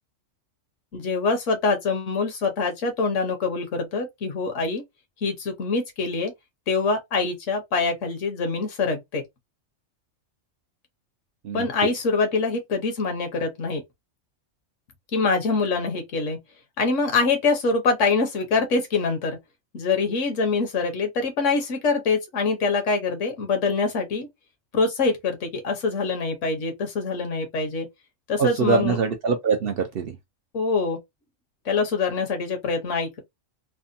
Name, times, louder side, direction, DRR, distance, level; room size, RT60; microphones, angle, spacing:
voice 1, 0.9-4.8 5.2-6.3 6.7-9.2 11.5-13.8 15.1-16.4 16.8-19.4 19.7-24.3 24.7-27.9 28.3-29.0 30.5-31.0 31.6-33.2, left 4 dB, 70° left, 1.2 m, -24 dB
voice 2, 28.4-30.2, right 5 dB, 65° right, 0.6 m, -23 dB
3.4 x 2.2 x 2.6 m
omnidirectional pair, 1.3 m